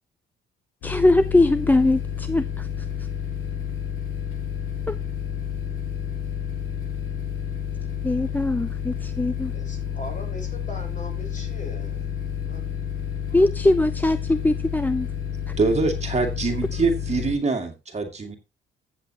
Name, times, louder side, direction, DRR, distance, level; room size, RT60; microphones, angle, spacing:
sound 1, 0.8-17.3, left 8 dB, 90° left, 2.8 m, -30 dB
voice 1, 0.8-2.7 4.9-5.0 8.0-9.5 13.3-15.1, left 2 dB, 10° left, 14 dB, 0.4 m, -21 dB
voice 2, 9.5-12.1 12.4-12.8 13.3-13.4 16.5-16.6, left 1 dB, 40° left, 2 dB, 6.4 m, -40 dB
voice 3, 15.6-18.4, right 3 dB, 35° right, 4 dB, 2.1 m, -24 dB
14.5 x 7.7 x 2.9 m, 0.26 s
cardioid pair, 90°, 20 cm